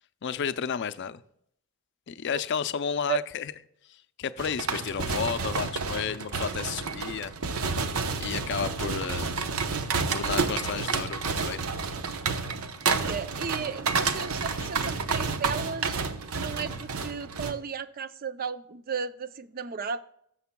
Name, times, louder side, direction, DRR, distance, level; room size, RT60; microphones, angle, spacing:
voice 1, 0.2-1.2 2.1-3.5 3.9-7.3 7.7-7.8 8.2-9.3 10.1-11.6, left 7 dB, 55° left, 0.4 m, -32 dB
sound 1, 4.4-17.5, right 4 dB, 80° right, 0.8 m, -30 dB
voice 2, 13.0-16.0 16.4-20.0, right 6 dB, 45° right, 0.5 m, -34 dB
12.5 x 7.7 x 2.2 m
head